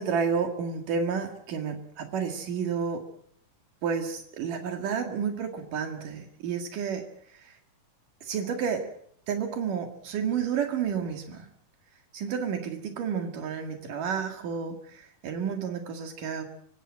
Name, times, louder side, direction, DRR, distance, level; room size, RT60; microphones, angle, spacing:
voice 1, 0.0-3.0 3.8-7.0 7.4-7.5 8.2-8.9 9.3-11.5 12.1-16.4, right 6 dB, 80° right, 5 dB, 3.7 m, -31 dB
26.5 x 16.0 x 8.7 m, 0.65 s
omnidirectional pair, 3.7 m